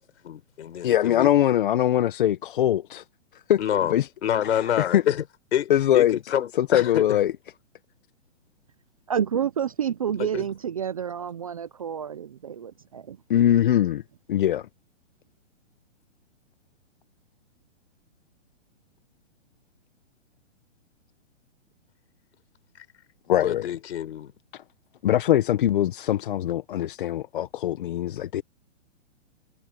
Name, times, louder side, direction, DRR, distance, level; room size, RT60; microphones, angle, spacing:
voice 1, 0.2-1.3 3.6-3.9 4.2-5.2 5.5-7.2 10.2-10.5 22.8-22.9 23.4-24.3, left 10 dB, 60° left, 4.5 m, -27 dB
voice 2, 0.8-3.0 3.3-3.6 3.9-4.1 4.4-5.0 5.7-6.2 6.6-7.3 13.3-14.0 14.3-14.7 23.3-23.7 24.5-24.6 25.0-28.4, left 11 dB, 40° left, 0.9 m, -22 dB
voice 3, 9.1-13.2, right 8 dB, 30° right, 0.4 m, -29 dB
hypercardioid pair, 160°, 38 cm